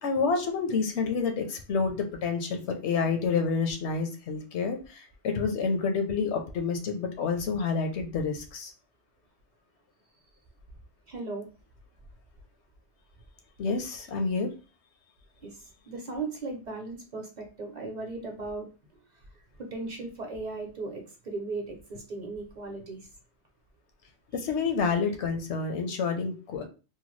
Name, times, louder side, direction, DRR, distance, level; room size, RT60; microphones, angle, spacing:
voice 1, 0.0-8.7 13.6-14.5 24.3-26.6, left 5 dB, 85° left, 5 dB, 1.0 m, -28 dB
voice 2, 11.1-11.5 15.4-19.0 19.6-23.1, right 3 dB, 45° right, 2 dB, 0.8 m, -37 dB
2.9 x 2.2 x 3.1 m, 0.33 s
omnidirectional pair, 1.1 m